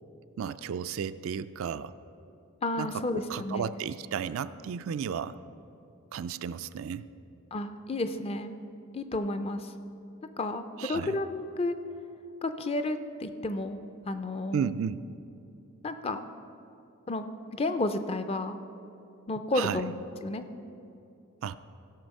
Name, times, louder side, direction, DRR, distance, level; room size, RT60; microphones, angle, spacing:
voice 1, 0.4-1.9 2.8-5.4 6.1-7.0 10.8-11.2 14.5-15.0 19.5-19.8 21.4-21.5, right 7 dB, 70° right, 13 dB, 0.3 m, -33 dB
voice 2, 2.6-3.8 7.5-8.6 8.9-9.7 10.4-11.7 12.4-14.7 15.8-16.2 17.1-17.3 17.5-18.6 19.3-19.9 20.2-20.4, left 2 dB, 25° left, 9 dB, 0.4 m, -31 dB
16.0 x 6.2 x 5.3 m, 2.8 s
head